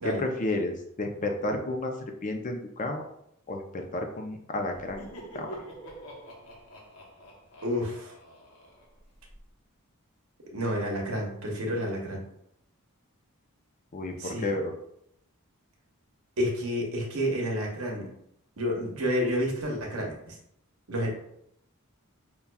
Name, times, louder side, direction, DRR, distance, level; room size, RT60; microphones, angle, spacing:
voice 1, 0.0-1.9 2.2-3.1 3.5-5.6 13.9-14.7, left 2 dB, 35° left, 3 dB, 0.5 m, -32 dB
Laughter, 4.7-9.4, right 1 dB, 70° left, 0.9 m, -46 dB
voice 2, 7.6-8.1 10.5-12.2 14.2-14.5 16.4-18.1 18.6-20.3 20.9-21.1, equal, 80° right, 0 dB, 0.9 m, -30 dB
5.4 x 2.3 x 2.2 m, 0.75 s
head